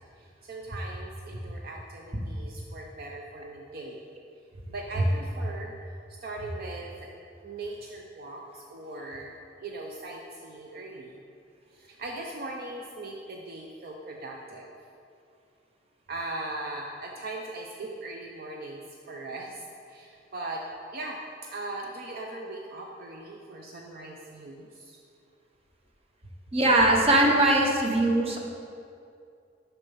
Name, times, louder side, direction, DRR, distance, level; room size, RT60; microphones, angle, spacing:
voice 1, 0.2-4.0 4.7-5.7 6.2-7.1 7.4-9.3 9.6-11.2 11.7-14.7 16.1-20.6 20.9-21.2 21.5-25.0, right 2 dB, 55° right, 0 dB, 0.6 m, -39 dB
voice 2, 26.5-28.4, right 1 dB, 30° right, 1 dB, 0.9 m, -21 dB
6.6 x 5.8 x 5.5 m, 2.4 s
head